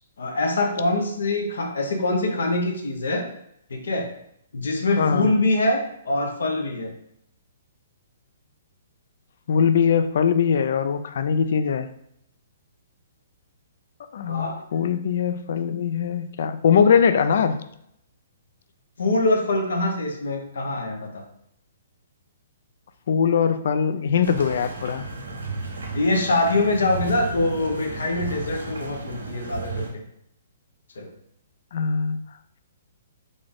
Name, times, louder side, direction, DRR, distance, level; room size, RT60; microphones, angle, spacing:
voice 1, 0.2-3.2 3.7-4.1 4.5-6.9 14.3-14.6 19.0-21.2 25.9-30.0 31.0-31.1, left 2 dB, 80° left, 3 dB, 0.7 m, -24 dB
voice 2, 5.0-5.3 9.5-11.9 14.1-17.6 23.1-25.1 31.7-32.2, left 7 dB, 65° left, 11 dB, 0.3 m, -21 dB
sound 1, 24.2-29.9, right 2 dB, 90° right, 0.8 m, -34 dB
3.8 x 2.5 x 3.5 m, 0.75 s
hypercardioid pair, 140°, 0 cm